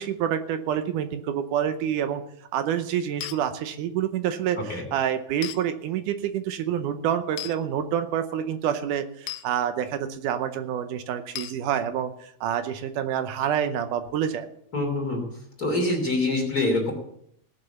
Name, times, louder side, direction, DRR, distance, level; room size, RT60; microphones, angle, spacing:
voice 1, 0.0-2.2 2.5-14.5, right 9 dB, 75° right, 10 dB, 2.0 m, -27 dB
sound 1, 3.2-3.4 5.4-5.6 7.4-7.6 9.3-9.5 11.4-11.6, left 15 dB, 80° left, 2.4 m, -34 dB
voice 2, 14.7-15.2 15.6-16.9, left 2 dB, 25° left, 1 dB, 3.1 m, -25 dB
18.0 x 6.8 x 6.9 m, 0.70 s
omnidirectional pair, 4.2 m